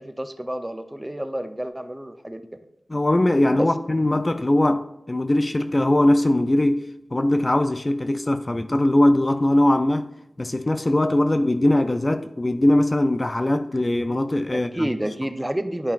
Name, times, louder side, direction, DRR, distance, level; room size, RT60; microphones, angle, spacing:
voice 1, 0.0-2.4 3.6-3.7 14.5-15.9, right 1 dB, 15° right, 0.7 m, -29 dB
voice 2, 2.9-6.8 7.1-10.1 10.4-14.9, left 1 dB, 35° left, 0.5 m, -20 dB
11.0 x 5.6 x 2.5 m
cardioid pair, 40°, 0 cm